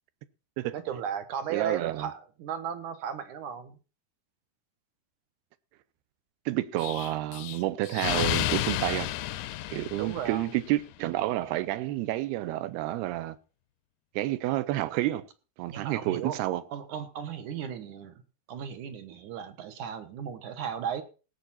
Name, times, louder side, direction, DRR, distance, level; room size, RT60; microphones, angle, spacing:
voice 1, 0.7-3.8 10.0-10.6 15.7-16.4 16.7-18.2 18.5-21.0, right 8 dB, 65° right, 2.3 m, -35 dB
voice 2, 1.5-2.1 6.5-9.1 9.7-13.4 14.2-15.3 15.6-16.6, right 15 dB, 80° right, 2.8 m, -29 dB
Explosion, 6.8-10.6, left 14 dB, 85° left, 1.8 m, -31 dB
18.5 x 8.1 x 4.2 m
omnidirectional pair, 4.6 m